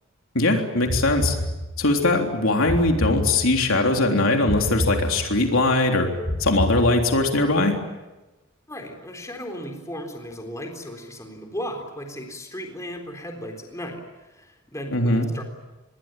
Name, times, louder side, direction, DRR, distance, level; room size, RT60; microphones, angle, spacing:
voice 1, 0.4-1.4 1.8-6.1 6.4-7.8 14.9-15.3, left 2 dB, 65° left, 3 dB, 3.5 m, -20 dB
sound 1, 0.9-2.0 2.7-3.8 4.5-5.6 6.2-7.4, left 1 dB, 30° left, 2.2 m, -28 dB
voice 2, 8.7-15.4, equal, 15° left, 3 dB, 3.9 m, -36 dB
26.5 x 21.5 x 9.2 m, 1.1 s
head